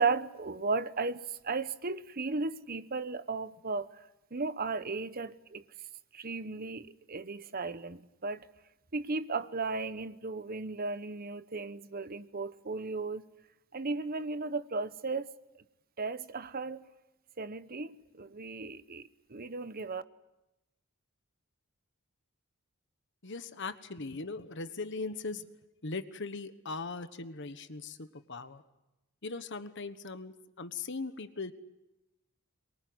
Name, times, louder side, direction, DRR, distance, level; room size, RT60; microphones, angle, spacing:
voice 1, 0.0-4.0 4.3-5.6 6.1-8.5 8.9-13.3 13.7-15.3 16.0-16.8 17.4-20.0, right 4 dB, 45° right, 1.0 m, -35 dB
voice 2, 23.2-25.5 25.8-28.6 29.2-31.5, left 3 dB, 60° left, 1.3 m, -39 dB
24.0 x 23.0 x 9.6 m
head